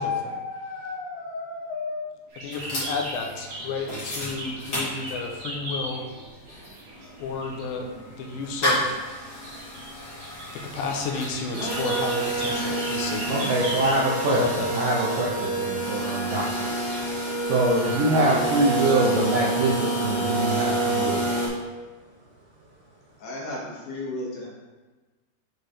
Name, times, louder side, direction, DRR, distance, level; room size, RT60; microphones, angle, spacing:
voice 1, 0.0-2.1 2.4-6.0 7.2-9.0 10.5-13.4 14.3-14.7, left 4 dB, 90° left, 2 dB, 2.9 m, -32 dB
sound 1, 2.3-7.6 8.1-8.5 8.9-14.6 15.2-17.1 17.8-19.1, right 1 dB, 50° right, 2.1 m, -38 dB
sound 2, 2.5-5.5 5.9-6.0 6.2-21.5, right 1 dB, 35° left, 1.7 m, -29 dB
voice 2, 13.3-14.4 14.7-16.7 17.4-21.3, right 2 dB, 80° right, -5 dB, 2.0 m, -24 dB
voice 3, 23.2-24.5, left 1 dB, 75° left, -4 dB, 3.3 m, -34 dB
7.5 x 4.8 x 3.3 m, 1.3 s
omnidirectional pair, 5.0 m